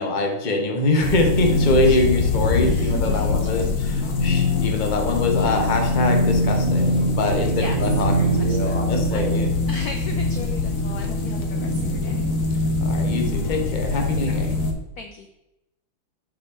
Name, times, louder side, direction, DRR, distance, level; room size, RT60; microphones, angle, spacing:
voice 1, 0.0-9.5 12.8-14.5, left 2 dB, 35° left, 3 dB, 0.8 m, -24 dB
sound 1, 1.0-14.7, left 2 dB, 50° left, 1.1 m, -22 dB
voice 2, 2.6-4.7 5.3-5.5 7.4-9.4 9.7-12.3 14.3-14.5 15.0-15.3, left 4 dB, 75° left, 5 dB, 0.8 m, -39 dB
6.9 x 5.2 x 4.2 m, 0.94 s
omnidirectional pair, 2.3 m